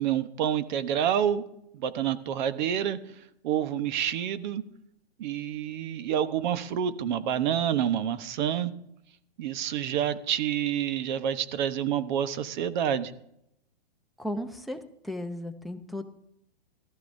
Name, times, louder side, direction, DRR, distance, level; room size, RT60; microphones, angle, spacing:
voice 1, 0.0-1.4 1.7-3.0 3.4-4.6 5.2-8.7 9.4-13.1, right 9 dB, 45° right, 12 dB, 1.1 m, -28 dB
voice 2, 14.2-14.8 15.0-16.0, left 1 dB, ahead, 8 dB, 0.7 m, -35 dB
17.5 x 13.5 x 2.7 m, 0.76 s
hypercardioid pair, 140°, 31 cm